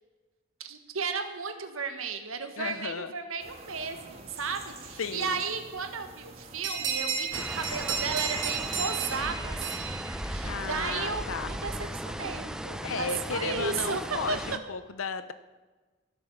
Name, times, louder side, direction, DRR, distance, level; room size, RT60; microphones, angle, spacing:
voice 1, 0.6-14.4, right 5 dB, 85° right, 7 dB, 1.6 m, -34 dB
voice 2, 2.6-3.1 5.0-5.4 10.4-11.5 12.8-15.3, left 5 dB, 80° left, 12 dB, 0.7 m, -34 dB
sound 1, 3.4-9.1, right 2 dB, 30° right, 2.3 m, -47 dB
sound 2, 6.6-10.9, right 6 dB, 55° right, 3.7 m, -33 dB
sound 3, 7.3-14.6, equal, 5° right, 0.6 m, -37 dB
15.5 x 11.5 x 7.3 m, 1.3 s
head